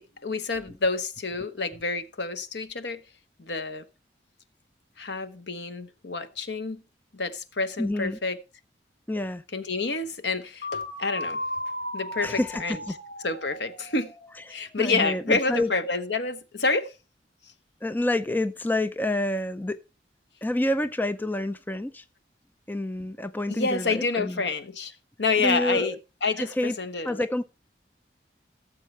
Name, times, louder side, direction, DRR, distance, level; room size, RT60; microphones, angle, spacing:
voice 1, 0.0-3.0 3.4-3.8 5.0-6.8 7.1-8.4 9.5-11.4 11.9-12.8 13.2-14.1 14.5-16.9 23.5-24.9 25.2-25.9 26.2-27.2, left 3 dB, 75° left, 1.1 m, -28 dB
voice 2, 7.8-8.2 9.1-9.4 12.2-12.9 14.8-15.7 17.8-19.8 20.4-22.0 22.7-24.4 25.4-26.0 26.4-26.8 27.0-27.4, left 1 dB, 10° left, 0.5 m, -28 dB
sound 1, 10.6-14.5, left 1 dB, 50° left, 2.0 m, -35 dB
17.0 x 7.4 x 3.2 m
head